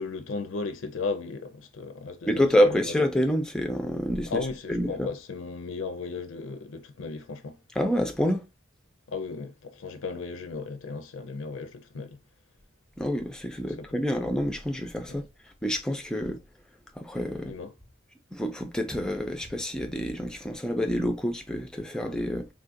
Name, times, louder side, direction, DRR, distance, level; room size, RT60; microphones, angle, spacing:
voice 1, 0.0-3.0 4.3-7.6 9.1-12.2 13.7-13.8 15.1-15.2 17.4-17.7, left 4 dB, 85° left, 0.5 m, -35 dB
voice 2, 2.3-4.4 4.7-5.1 7.8-8.4 13.0-15.2 15.6-16.4 17.0-17.5 18.3-22.5, equal, 5° left, 0.4 m, -27 dB
3.7 x 2.4 x 2.5 m
head